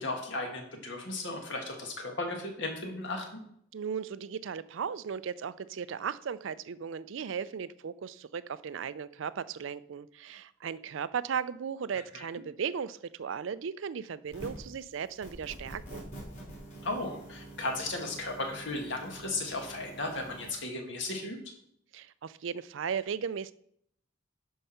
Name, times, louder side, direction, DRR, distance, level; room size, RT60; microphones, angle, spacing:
voice 1, 0.0-3.2 12.1-12.3 16.8-21.4, left 2 dB, 60° left, 2 dB, 1.9 m, -35 dB
voice 2, 3.7-16.0 21.9-23.5, right 7 dB, 65° right, 16 dB, 0.4 m, -36 dB
sound 1, 14.3-14.7 15.2-20.5, right 2 dB, 40° left, 3.9 m, -46 dB
10.5 x 4.8 x 5.7 m, 0.70 s
head